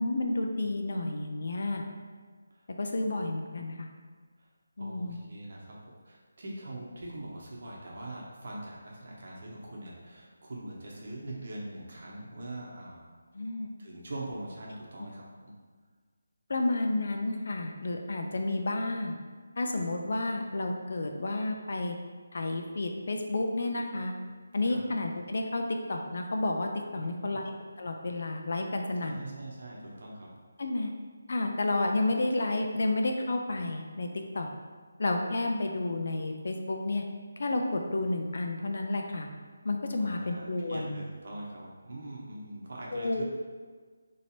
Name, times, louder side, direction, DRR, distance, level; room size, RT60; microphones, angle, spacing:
voice 1, 0.0-1.8 2.8-3.9 4.8-5.2 13.3-13.7 16.5-19.2 19.6-22.0 22.3-24.1 24.5-25.6 25.9-29.2 30.6-30.9 31.3-34.1 34.3-34.5 35.0-37.0 37.4-39.3 39.6-41.0 42.9-43.2, left 2 dB, 45° left, 3 dB, 0.4 m, -31 dB
voice 2, 4.8-13.0 13.8-15.5 24.6-24.8 27.0-27.4 29.0-30.4 39.9-43.2, right 1 dB, 40° right, -4 dB, 0.8 m, -42 dB
3.0 x 2.8 x 4.2 m, 1.5 s
figure-of-eight pair, 180°, 0 cm